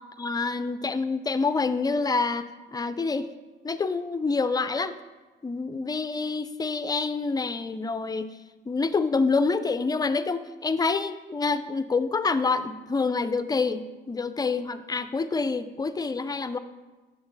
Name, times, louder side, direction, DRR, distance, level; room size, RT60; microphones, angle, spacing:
voice 1, 0.2-3.3 3.6-4.9 5.4-8.3 8.7-16.6, left 4 dB, 20° left, 12 dB, 0.4 m, -27 dB
7.2 x 5.9 x 3.9 m, 1.2 s
cardioid pair, 90°, 20 cm